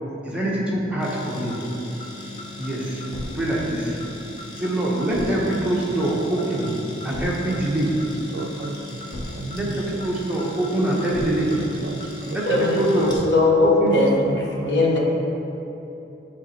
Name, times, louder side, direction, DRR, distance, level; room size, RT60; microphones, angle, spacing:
voice 1, 0.2-1.6 2.6-3.0 3.3-4.0 4.6-6.7 7.0-7.9 9.5-11.6 12.3-13.1 13.8-14.0, right 1 dB, 5° right, -5 dB, 0.9 m, -24 dB
sound 1, 1.0-14.3, left 3 dB, 20° left, 0.8 m, -39 dB
sound 2, 1.5-1.6 2.0-2.1 2.4-2.7 3.0-3.2 3.5-3.6 4.0-4.1 4.4-4.7 5.0-5.3 5.5-5.6 6.0-6.1 6.4-6.7 7.0-7.3 7.5-7.6 8.0-8.1 8.4-8.7 9.0-9.2 9.5-9.6 10.0-10.1 10.4-10.7 11.0-11.2 11.5-11.6 12.0-12.1 12.4-12.7 13.0-13.2, left 1 dB, 45° left, 1.2 m, -36 dB
voice 2, 7.2-7.6 7.9-9.0 9.3-10.2 11.4-13.0 14.1-15.0, right 2 dB, 55° right, 5 dB, 0.3 m, -35 dB
voice 3, 12.4-15.0, left 2 dB, 60° left, -2 dB, 0.9 m, -20 dB
8.1 x 3.3 x 4.2 m, 3.0 s
head